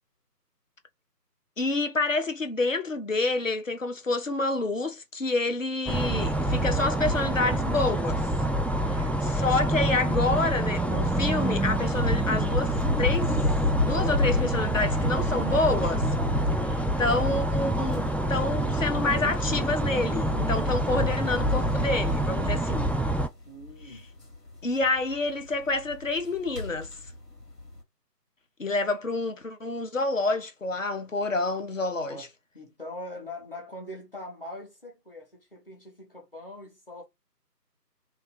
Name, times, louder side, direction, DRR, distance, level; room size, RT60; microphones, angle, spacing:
voice 1, 1.6-8.2 8.9-13.4 13.8-16.1 16.6-22.9 24.6-26.9 28.6-32.2, left 2 dB, 50° left, 0.9 m, -28 dB
sound 1, 5.9-23.3, right 1 dB, 5° left, 0.3 m, -27 dB
sound 2, 11.4-27.8, left 2 dB, 75° left, 2.3 m, -33 dB
voice 2, 23.4-24.1 32.1-32.3 32.5-37.0, left 1 dB, 35° left, 1.4 m, -42 dB
3.1 x 3.0 x 4.3 m
figure-of-eight pair, 170°, 49 cm